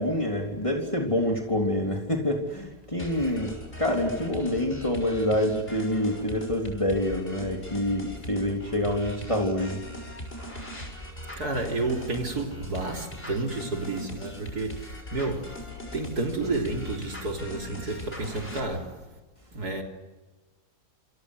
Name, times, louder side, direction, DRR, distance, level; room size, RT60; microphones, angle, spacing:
voice 1, 0.0-3.5 3.8-9.8, left 1 dB, 20° left, 3.4 m, -27 dB
sound 1, 3.0-18.6, left 1 dB, 40° left, 6.6 m, -40 dB
voice 2, 11.4-15.6 15.9-19.1 19.5-19.8, right 2 dB, 85° right, 4.0 m, -31 dB
28.0 x 28.0 x 6.5 m
omnidirectional pair, 1.6 m